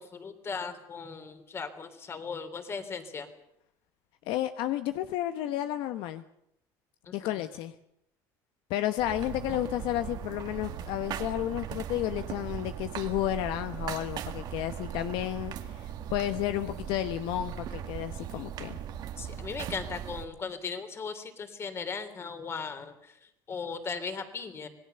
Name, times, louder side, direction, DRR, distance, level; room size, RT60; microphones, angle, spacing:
voice 1, 0.0-3.3 7.2-7.3 19.2-24.7, left 5 dB, 30° left, 9 dB, 3.3 m, -38 dB
voice 2, 4.3-6.2 7.1-7.7 8.7-18.8, left 13 dB, 65° left, 10 dB, 1.0 m, -32 dB
sound 1, 9.0-20.2, right 9 dB, 50° right, 2.0 m, -38 dB
26.5 x 18.5 x 6.8 m, 0.79 s
supercardioid pair, 120°, 9 cm